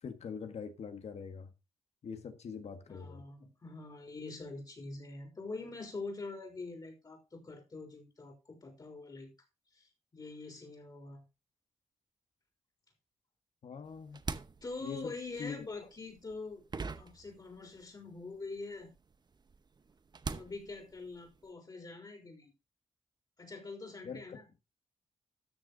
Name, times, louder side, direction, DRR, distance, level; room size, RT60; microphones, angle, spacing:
voice 1, 0.0-1.5 2.0-3.2 13.6-14.2 14.8-15.1 15.4-15.6 24.0-24.4, left 6 dB, 70° left, 1.7 m, -43 dB
voice 2, 2.9-9.3 9.7-11.2 14.6-16.6 16.9-18.9 20.3-22.5 23.4-24.4, left 3 dB, 35° left, 3.9 m, -44 dB
sound 1, 13.9-17.9 18.2-21.5, right 4 dB, 40° right, 0.9 m, -44 dB
13.0 x 6.8 x 3.9 m
cardioid pair, 100°, 11 cm